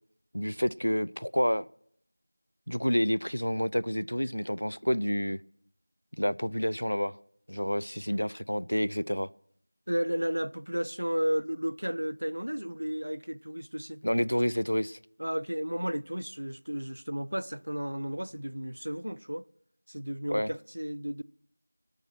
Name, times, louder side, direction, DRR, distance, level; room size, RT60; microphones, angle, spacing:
voice 1, 0.3-1.6 2.7-5.4 6.1-7.2 7.5-9.3 14.0-15.0 20.3-20.5, equal, 75° left, 0.5 m, -29 dB
voice 2, 9.9-14.0 15.2-19.5 19.9-21.2, equal, 65° right, 0.5 m, -33 dB
24.5 x 8.9 x 4.5 m
figure-of-eight pair, 175°, 0 cm